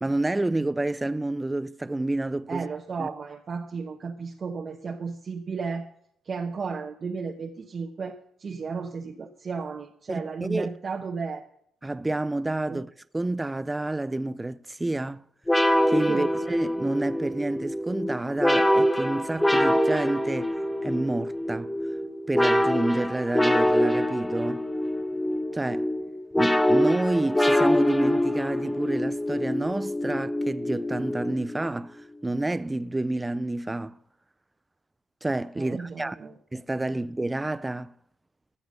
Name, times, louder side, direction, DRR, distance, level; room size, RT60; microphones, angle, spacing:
voice 1, 0.0-2.7 3.0-3.1 10.1-10.7 11.8-12.9 13.1-15.2 15.9-20.5 20.8-21.7 22.3-24.7 25.5-25.9 26.4-34.0 35.2-36.2 36.5-37.9, right 2 dB, 15° right, 0.4 m, -29 dB
voice 2, 2.5-5.9 6.2-11.4 12.7-12.8 16.1-16.3 35.6-36.3, right 5 dB, 45° right, 0.9 m, -34 dB
sound 1, 15.5-31.7, left 1 dB, 10° left, 0.8 m, -25 dB
13.5 x 7.0 x 6.5 m
cardioid pair, 90°, 0 cm